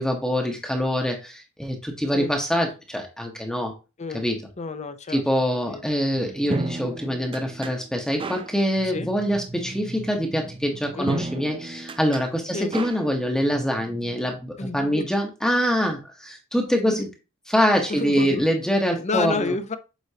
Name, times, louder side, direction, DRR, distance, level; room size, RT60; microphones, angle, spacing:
voice 1, 0.0-3.7 4.1-4.4 5.1-17.1 17.5-19.5, equal, 5° left, 1.0 m, -24 dB
voice 2, 4.6-5.2 5.7-5.8 8.8-9.1 11.0-11.3 12.5-12.7 14.6-15.1 16.9-17.0 17.9-18.4 18.9-19.8, left 3 dB, 30° left, 0.6 m, -30 dB
sound 1, 6.1-14.2, right 3 dB, 25° right, 0.5 m, -35 dB
8.0 x 4.4 x 2.8 m
head